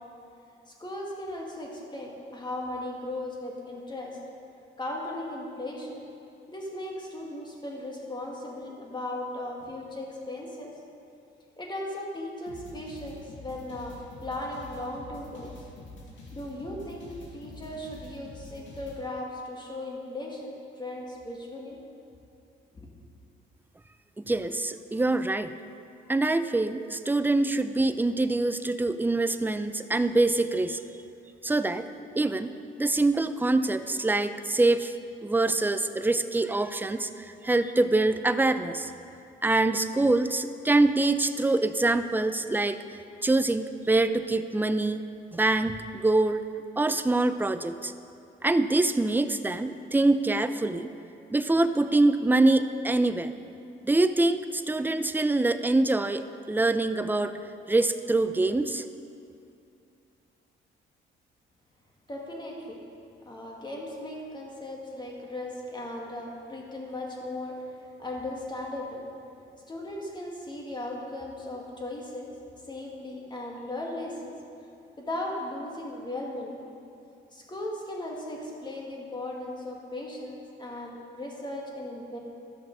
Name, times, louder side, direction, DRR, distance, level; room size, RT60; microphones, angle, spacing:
voice 1, 0.7-4.2 4.8-6.0 6.5-10.8 11.6-15.5 16.3-17.1 17.3-21.8 22.7-22.9 62.1-62.8 63.3-67.6 68.0-69.0 69.7-72.3 72.7-74.3 75.0-76.6 77.3-82.2, left 1 dB, 20° left, -1 dB, 2.1 m, -37 dB
sound 1, 12.5-19.0, left 2 dB, 70° left, 2.2 m, -46 dB
voice 2, 24.2-25.5 26.1-30.8 31.4-31.9 32.2-34.9 35.2-38.9 39.4-42.8 43.2-45.1 45.3-46.5 46.8-47.9 48.4-50.9 51.3-53.3 53.8-57.3 57.7-58.8, right 2 dB, 10° right, 11 dB, 0.4 m, -25 dB
13.5 x 6.3 x 5.3 m, 2.6 s
cardioid pair, 90°, 20 cm